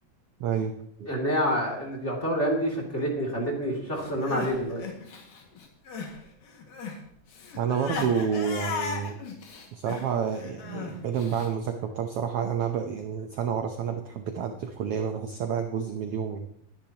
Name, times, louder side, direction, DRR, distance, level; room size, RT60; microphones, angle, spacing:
voice 1, 0.4-0.7 7.5-9.2 9.7-16.4, right 7 dB, 75° right, 6 dB, 1.3 m, -29 dB
voice 2, 1.0-4.8, equal, 20° left, -2 dB, 2.6 m, -27 dB
Crying sobbing, 4.0-6.2 6.4-11.5, left 5 dB, 80° left, 3.6 m, -37 dB
21.5 x 10.5 x 2.9 m, 0.71 s
omnidirectional pair, 3.8 m